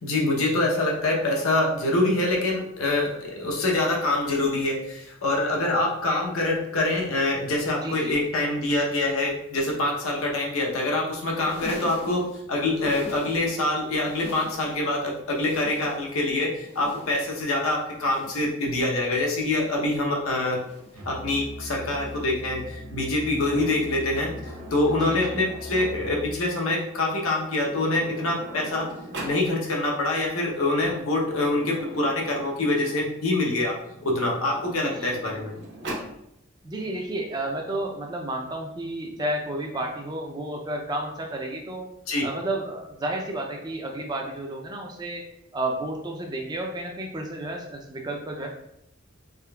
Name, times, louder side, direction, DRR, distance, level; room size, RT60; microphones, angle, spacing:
voice 1, 0.0-20.6 21.1-28.9 29.2-33.8 34.0-35.5 42.1-42.3, left 2 dB, 90° left, -1 dB, 0.8 m, -25 dB
voice 2, 7.8-8.2 25.0-25.4 34.8-35.1 36.6-41.9 42.2-45.3 45.5-48.5, right 1 dB, 20° right, 1 dB, 0.4 m, -31 dB
sound 1, 11.3-13.7 14.0-14.9 15.3-16.2 16.6-17.5 17.9-18.7 19.2-19.9 20.6-21.1 21.9-22.4 23.2-23.7 24.6-24.9 25.9-26.1 27.2-27.3, left 1 dB, 30° left, 0.6 m, -43 dB
Musical instrument, 20.9-26.4, left 1 dB, 90° right, 0.7 m, -40 dB
Sliding door, 23.4-26.2 27.2-27.3 27.6-29.4 30.6-33.1 33.9-36.2, right 1 dB, 55° right, 0.8 m, -41 dB
3.6 x 3.3 x 2.2 m, 0.80 s
head